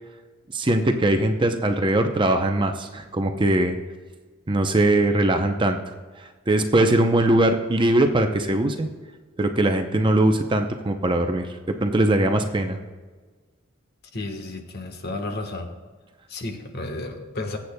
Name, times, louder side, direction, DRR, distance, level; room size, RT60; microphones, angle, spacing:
voice 1, 0.5-3.8 4.5-5.8 6.5-8.9 9.4-12.8, right 1 dB, 25° right, 6 dB, 0.6 m, -21 dB
voice 2, 14.1-15.7 16.3-17.6, left 2 dB, 50° left, 5 dB, 1.2 m, -32 dB
20.5 x 8.0 x 2.2 m, 1.4 s
head